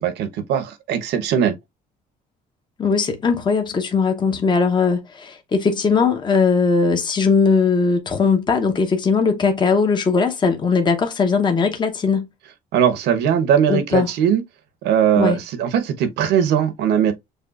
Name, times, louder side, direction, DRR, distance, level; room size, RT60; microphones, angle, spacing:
voice 1, 0.0-1.5 12.7-14.4 14.8-17.1, right 8 dB, 80° right, 1.0 m, -19 dB
voice 2, 2.8-12.3 13.7-14.1 15.2-15.4, left 5 dB, 25° left, 0.8 m, -19 dB
6.6 x 2.4 x 2.4 m
cardioid pair, 110°, 17 cm